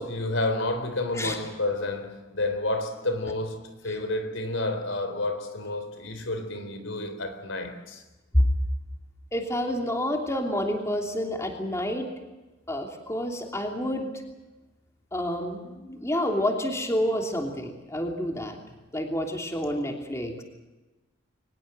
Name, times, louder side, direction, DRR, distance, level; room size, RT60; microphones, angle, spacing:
voice 1, 0.0-8.0, left 2 dB, 75° left, 4.1 m, -30 dB
voice 2, 9.3-12.1 12.7-14.1 15.1-18.6 18.9-20.4, left 1 dB, 15° left, 3.0 m, -28 dB
23.5 x 20.5 x 7.8 m
head